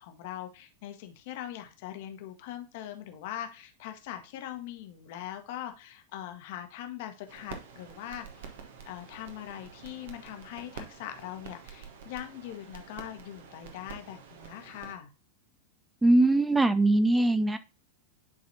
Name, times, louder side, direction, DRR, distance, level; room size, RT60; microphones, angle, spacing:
voice 1, 0.0-8.6 8.9-15.1, left 11 dB, 50° left, 6 dB, 1.2 m, -41 dB
sound 1, 7.3-15.0, right 6 dB, 55° right, 1.2 m, -47 dB
voice 2, 16.0-17.6, right 2 dB, 10° right, 12 dB, 0.4 m, -22 dB
10.5 x 4.0 x 2.8 m, 0.30 s
figure-of-eight pair, 90°, 0 cm